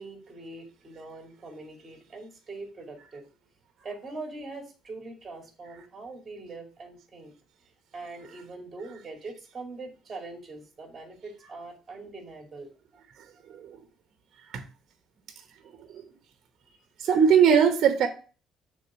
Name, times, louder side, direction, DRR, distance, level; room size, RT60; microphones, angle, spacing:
voice 1, 0.0-3.2 3.8-7.3 7.9-12.7 15.9-16.0, right 3 dB, 25° right, 2.5 m, -42 dB
voice 2, 17.0-18.1, right 7 dB, 55° right, 0.9 m, -20 dB
6.3 x 3.9 x 6.2 m
cardioid pair, 100°, 0 cm